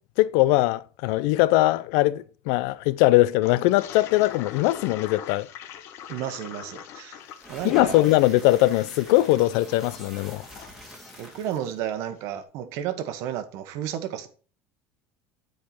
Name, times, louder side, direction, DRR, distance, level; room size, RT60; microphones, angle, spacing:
voice 1, 0.2-5.5 7.6-10.4, left 17 dB, 65° left, 0.4 m, -21 dB
Toilet flush, 3.4-12.0, left 10 dB, 45° left, 0.8 m, -43 dB
voice 2, 6.1-7.2 7.5-8.0 11.2-14.3, right 10 dB, 55° right, 1.1 m, -32 dB
sound 1, 7.3-11.7, equal, 5° right, 1.8 m, -44 dB
9.5 x 4.7 x 4.3 m
cardioid pair, 160°, 6 cm